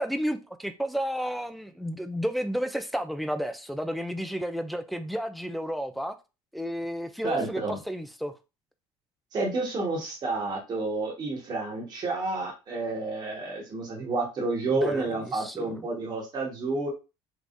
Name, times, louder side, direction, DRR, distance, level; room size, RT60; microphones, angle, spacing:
voice 1, 0.0-6.1 6.5-7.6 7.9-8.3 14.7-15.8, equal, ahead, 0.4 m, -32 dB
voice 2, 7.2-7.8 9.3-16.9, right 3 dB, 35° right, 1.4 m, -30 dB
3.4 x 3.2 x 2.6 m
cardioid pair, 115°, 11 cm